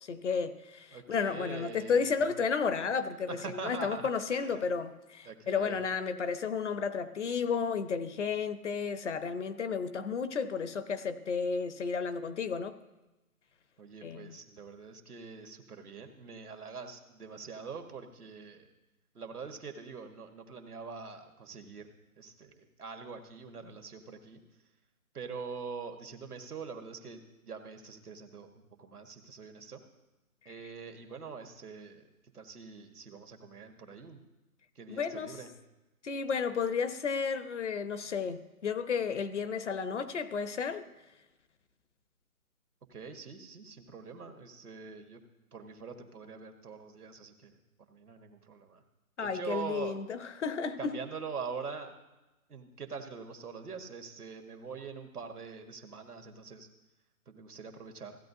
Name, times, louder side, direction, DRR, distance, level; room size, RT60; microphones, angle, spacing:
voice 1, 0.0-12.7 14.0-14.4 35.0-35.4 36.0-40.8 49.2-50.9, left 5 dB, 55° left, 12 dB, 0.7 m, -32 dB
voice 2, 0.9-2.3 3.3-4.7 5.2-5.9 13.8-18.7 19.1-21.9 22.2-24.4 25.1-27.2 27.5-29.8 30.4-32.0 32.3-34.2 34.7-35.5 42.9-45.2 45.5-47.5 47.9-48.8 49.2-50.0 50.8-51.9 52.5-56.7 57.3-58.2, right 5 dB, 90° right, 5 dB, 1.5 m, -44 dB
15.5 x 8.9 x 2.7 m, 1.0 s
hypercardioid pair, 160°, 44 cm